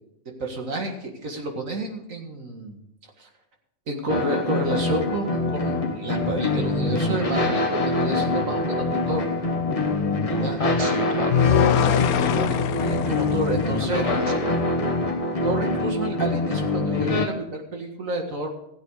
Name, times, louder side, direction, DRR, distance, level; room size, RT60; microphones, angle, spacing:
voice 1, 0.4-2.8 3.2-3.3 3.9-9.3 10.3-11.1 12.5-14.1 15.4-18.5, right 1 dB, 60° right, 2 dB, 2.2 m, -30 dB
sound 1, 4.1-17.3, left 2 dB, 25° left, 1.2 m, -24 dB
voice 2, 10.6-12.6 13.8-14.6, left 3 dB, 45° left, 6 dB, 0.4 m, -31 dB
sound 2, 11.3-14.5, left 12 dB, 80° left, 1.1 m, -24 dB
16.0 x 8.3 x 4.8 m, 0.79 s
omnidirectional pair, 1.5 m